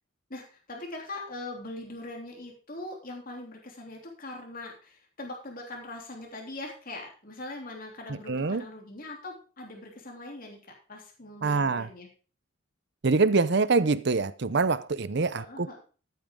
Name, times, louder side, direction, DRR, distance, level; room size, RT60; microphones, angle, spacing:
voice 1, 0.3-12.1 15.3-15.8, left 2 dB, 45° left, 3.2 m, -41 dB
voice 2, 8.3-8.6 11.4-11.9 13.0-15.4, right 4 dB, 55° right, 0.7 m, -24 dB
14.0 x 9.3 x 3.7 m
head